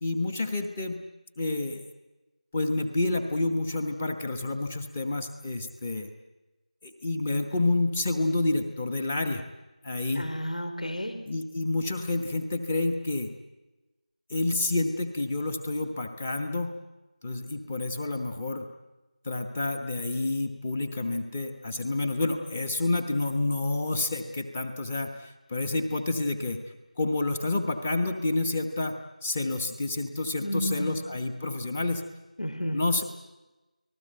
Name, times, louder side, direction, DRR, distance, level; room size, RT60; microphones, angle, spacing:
voice 1, 0.0-1.0 1.4-1.8 2.5-6.1 6.8-9.4 9.8-10.3 11.3-13.3 14.3-16.7 17.2-18.7 19.2-26.6 27.0-32.0 32.7-33.0, left 2 dB, 10° left, 8 dB, 1.0 m, -29 dB
voice 2, 10.2-11.2 30.4-31.0 32.4-32.8, equal, 70° left, 9 dB, 4.7 m, -31 dB
30.0 x 19.5 x 7.9 m, 1.1 s
figure-of-eight pair, 170°, 4 cm